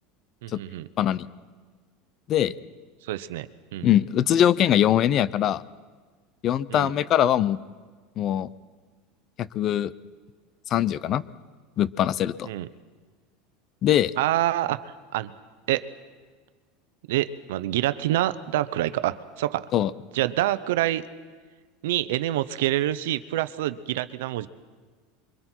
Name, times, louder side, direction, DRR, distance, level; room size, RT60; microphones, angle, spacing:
voice 1, 0.4-0.9 3.1-3.9 6.7-6.9 12.5-12.7 14.2-15.3 15.7-15.9 17.1-19.7 20.1-21.0 21.8-24.5, right 14 dB, 85° right, 14 dB, 0.9 m, -26 dB
voice 2, 1.0-1.3 2.3-2.5 3.8-5.6 6.4-7.6 8.2-8.5 9.4-9.9 10.7-11.2 11.8-12.5 13.8-14.1 19.7-19.9, left 11 dB, 40° left, 19 dB, 0.6 m, -22 dB
28.0 x 23.5 x 4.6 m, 1.5 s
supercardioid pair, 140°, 0 cm